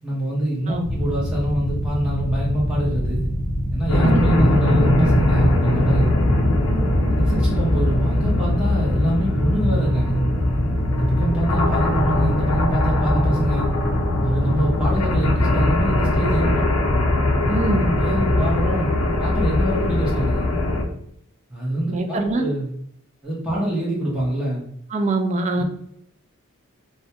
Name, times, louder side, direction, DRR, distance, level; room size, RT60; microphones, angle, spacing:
voice 1, 0.0-3.3 3.7-6.1 7.1-10.2 11.0-13.7 14.2-16.7 18.0-18.9 19.2-20.5 21.5-22.7 23.2-24.6 25.6-25.7, right 1 dB, 5° right, -6 dB, 0.7 m, -25 dB
sound 1, 0.8-18.6, equal, 60° right, 1.0 m, -26 dB
sound 2, 3.9-20.8, left 1 dB, 85° left, 0.6 m, -21 dB
voice 2, 17.5-17.9 21.9-22.4 24.9-25.6, right 2 dB, 35° right, 5 dB, 0.3 m, -23 dB
2.1 x 2.1 x 2.8 m, 0.72 s
head